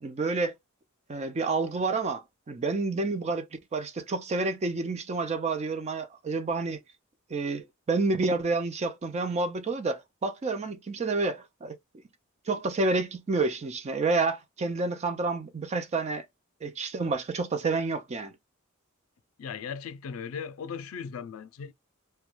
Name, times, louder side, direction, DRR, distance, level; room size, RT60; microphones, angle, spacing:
voice 1, 0.0-0.5 1.1-3.5 3.7-6.8 7.3-11.8 12.5-16.2 16.6-18.3, right 3 dB, 30° right, 0.4 m, -29 dB
voice 2, 19.4-21.7, left 6 dB, 75° left, 0.4 m, -37 dB
2.2 x 2.2 x 3.1 m
head